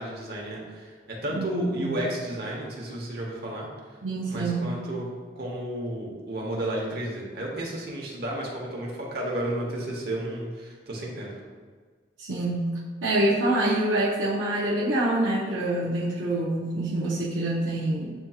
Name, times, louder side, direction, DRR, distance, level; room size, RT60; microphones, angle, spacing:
voice 1, 0.0-3.7 4.2-11.3, right 1 dB, 55° right, -2 dB, 1.0 m, -32 dB
voice 2, 1.3-2.0 4.0-4.7 12.2-18.1, right 1 dB, 75° right, -6 dB, 0.7 m, -26 dB
7.9 x 2.7 x 2.3 m, 1.5 s
head